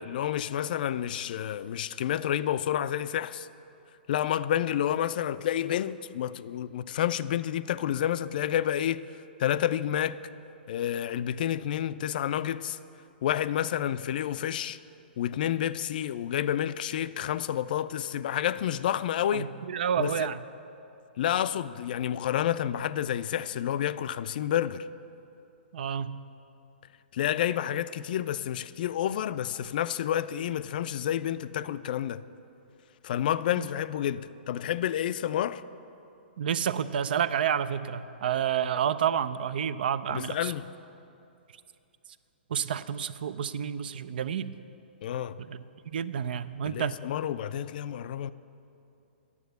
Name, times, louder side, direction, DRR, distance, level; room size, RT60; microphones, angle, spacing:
voice 1, 0.0-3.5 4.1-9.0 9.4-10.2 10.7-12.8 13.2-14.8 15.2-19.5 20.0-20.3 21.2-24.9 27.1-32.2 33.0-35.6 40.1-40.6 45.0-45.4 46.6-48.3, left 10 dB, 55° left, 0.3 m, -29 dB
voice 2, 19.3-20.4 25.7-26.2 33.6-33.7 36.4-40.5 42.5-44.5 45.4-45.6 45.9-47.0, right 8 dB, 65° right, 0.4 m, -29 dB
9.6 x 7.1 x 8.0 m
hypercardioid pair, 125°, 6 cm